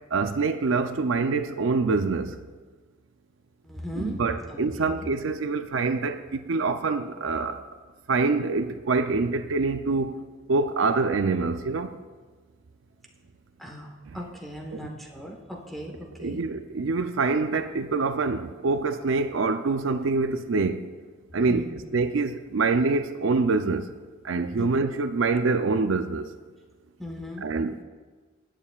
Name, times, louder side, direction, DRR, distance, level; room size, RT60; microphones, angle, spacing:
voice 1, 0.1-2.4 4.0-7.7 8.1-10.2 10.5-12.0 14.1-14.2 14.7-14.9 16.2-20.8 21.3-23.9 24.2-26.3 27.4-27.7, right 3 dB, 75° right, 0.5 m, -25 dB
voice 2, 3.6-4.2 4.5-5.1 13.6-16.4 21.5-21.8 24.6-24.7 27.0-27.4, equal, ahead, 1.2 m, -38 dB
19.0 x 8.6 x 2.4 m
head